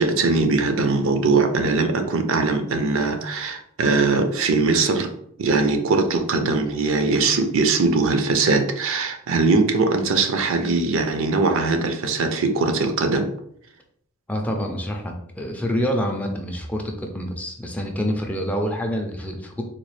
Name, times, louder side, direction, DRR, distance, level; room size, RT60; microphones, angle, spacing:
voice 1, 0.0-5.1 5.4-13.3, right 3 dB, 60° right, 6 dB, 0.5 m, -21 dB
voice 2, 14.3-19.6, equal, 5° left, 1 dB, 0.4 m, -27 dB
3.9 x 2.3 x 3.1 m, 0.69 s
head